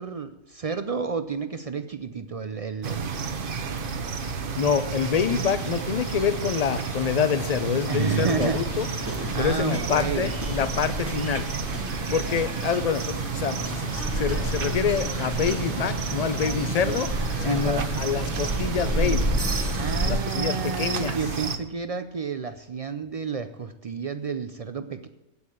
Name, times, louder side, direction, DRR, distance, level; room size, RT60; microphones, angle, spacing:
voice 1, 0.0-3.9 5.3-5.4 7.9-8.6 9.3-10.3 17.4-17.9 19.7-25.1, right 5 dB, 70° right, 10 dB, 0.3 m, -31 dB
sound 1, 2.8-21.6, right 5 dB, 45° right, 0.9 m, -31 dB
voice 2, 4.5-8.9 9.4-11.7 12.1-17.1 17.4-19.3 20.0-21.2, left 7 dB, 40° left, 12 dB, 0.6 m, -26 dB
Chirp tweet, 5.0-19.1, left 5 dB, 60° left, 1.3 m, -48 dB
sound 2, 8.1-20.1, right 1 dB, 10° right, 0.8 m, -31 dB
8.5 x 8.2 x 8.5 m, 1.0 s
omnidirectional pair, 1.4 m